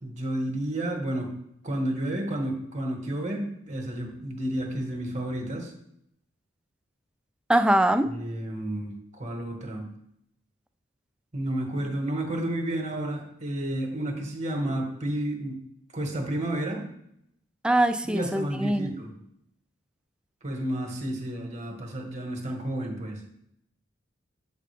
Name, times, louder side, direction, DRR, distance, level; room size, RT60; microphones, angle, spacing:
voice 1, 0.0-1.3 1.6-5.7 8.0-9.8 11.3-15.6 15.9-16.8 18.0-19.1 20.4-23.2, right 1 dB, 35° right, 2 dB, 1.4 m, -31 dB
voice 2, 7.5-8.1 17.6-19.0, right 1 dB, 5° right, 9 dB, 0.3 m, -22 dB
7.6 x 5.2 x 3.3 m, 0.74 s
head